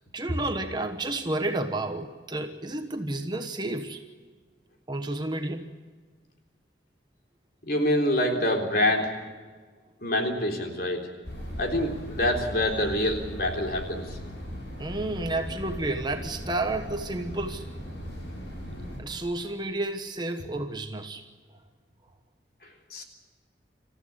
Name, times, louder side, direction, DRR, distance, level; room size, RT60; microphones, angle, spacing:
voice 1, 0.1-4.0 4.9-5.7 14.8-17.7 19.0-21.3, right 2 dB, 25° right, 6 dB, 1.2 m, -31 dB
voice 2, 7.7-9.1 10.0-11.1 11.6-14.1 22.9-23.0, left 1 dB, 55° left, 3 dB, 3.7 m, -26 dB
sound 1, 11.2-19.0, equal, 90° left, 7.9 m, -38 dB
27.0 x 14.5 x 9.9 m, 1.5 s
head